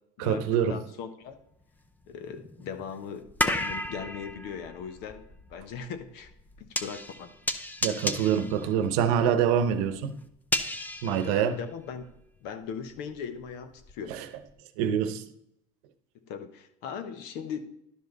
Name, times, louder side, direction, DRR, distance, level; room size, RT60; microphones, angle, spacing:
voice 1, 0.2-0.8 7.8-10.2 11.0-11.6 14.1-14.3 14.8-15.2, right 8 dB, 75° right, 11 dB, 0.9 m, -25 dB
voice 2, 0.7-1.4 2.1-5.2 5.5-6.3 6.6-7.3 11.0-12.0 12.4-14.2 16.3-17.6, left 7 dB, 60° left, 10 dB, 1.1 m, -39 dB
sound 1, 1.3-1.4 2.0-12.2 12.5-14.1 14.5-14.6, left 1 dB, 10° left, 0.6 m, -34 dB
11.5 x 5.1 x 3.9 m, 0.79 s
supercardioid pair, 135°, 19 cm